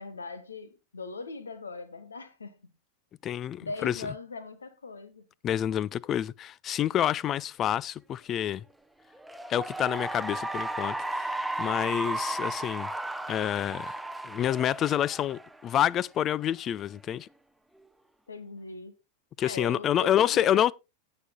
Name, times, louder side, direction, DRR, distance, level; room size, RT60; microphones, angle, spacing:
voice 1, 0.0-2.7 3.6-5.2 18.3-18.9 19.4-20.7, left 3 dB, 75° left, 1.4 m, -40 dB
voice 2, 3.2-4.1 5.4-8.7 9.5-12.9 13.3-14.0 14.2-17.3 19.4-20.7, left 10 dB, 30° left, 0.4 m, -28 dB
Cheering / Applause, 9.1-15.8, right 2 dB, 5° right, 0.7 m, -34 dB
17.5 x 6.1 x 2.2 m
figure-of-eight pair, 90°, 0 cm